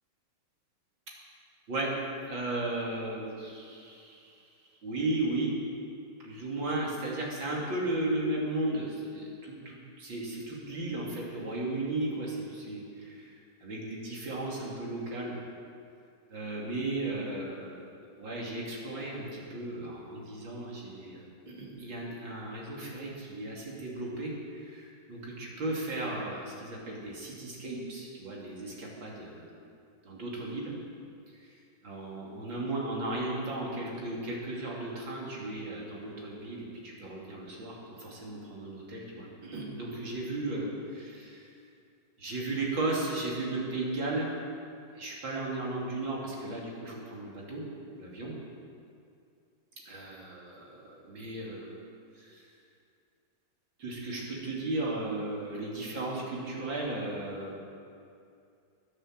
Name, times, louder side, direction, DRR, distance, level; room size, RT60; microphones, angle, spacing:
voice 1, 2.2-4.3 4.8-5.5 6.2-13.4 13.6-15.4 16.3-17.9 18.2-29.6 30.0-30.7 31.4-31.5 31.8-41.4 42.2-44.4 45.0-47.6 48.0-48.3 49.9-51.9 52.2-52.4 53.8-57.6, right 2 dB, 70° right, -3 dB, 3.5 m, -35 dB
11.0 x 11.0 x 7.6 m, 2.5 s
omnidirectional pair, 2.2 m